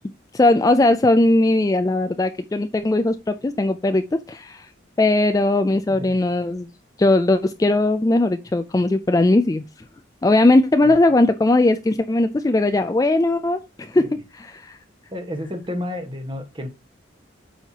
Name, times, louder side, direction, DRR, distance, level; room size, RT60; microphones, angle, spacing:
voice 1, 0.3-4.7 5.0-6.7 7.0-9.6 10.2-14.8, left 2 dB, 20° left, 0.3 m, -19 dB
voice 2, 15.1-16.7, left 1 dB, 25° right, 1.3 m, -31 dB
9.0 x 5.6 x 2.8 m
head